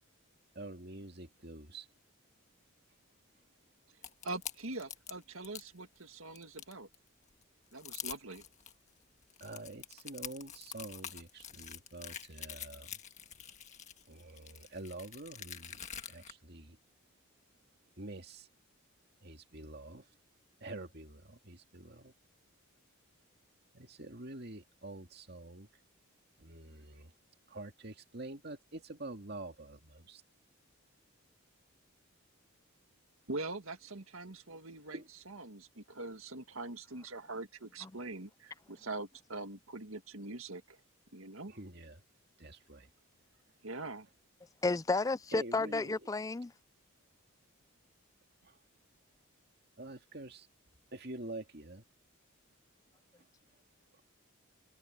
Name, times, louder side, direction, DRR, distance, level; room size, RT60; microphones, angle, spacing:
voice 1, 0.5-1.9 9.4-13.0 14.1-15.8 16.1-16.8 18.0-18.5 19.2-20.1 20.6-22.1 23.7-25.7 26.4-27.1 27.5-30.2 34.9-35.1 41.5-42.0 42.4-42.9 45.3-46.1 48.4-48.5 49.8-50.5 50.9-51.8 53.9-54.0, right 2 dB, 50° right, 2.2 m, -47 dB
sound 1, 4.0-5.7 6.1-7.0 7.4-7.5 7.7-8.7 9.2-16.3, left 9 dB, 35° left, 1.6 m, -46 dB
voice 2, 4.2-6.9 7.7-8.4 33.3-40.8 41.1-41.5 43.6-44.1, right 2 dB, 75° right, 2.0 m, -43 dB
voice 3, 44.6-46.5, left 3 dB, 15° left, 0.3 m, -32 dB
head